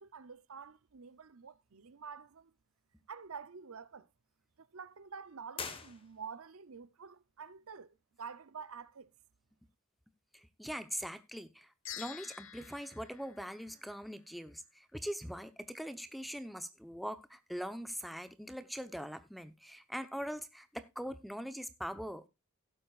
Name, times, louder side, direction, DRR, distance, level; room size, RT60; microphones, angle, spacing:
voice 1, 0.0-2.5 3.1-4.1 4.6-9.1, right 6 dB, 70° right, 0.7 m, -48 dB
sound 1, 5.5-6.6, left 5 dB, 25° left, 1.4 m, -44 dB
voice 2, 10.3-22.3, equal, ahead, 0.9 m, -42 dB
sound 2, 11.9-14.3, left 10 dB, 60° left, 1.0 m, -49 dB
17.0 x 7.6 x 2.4 m
head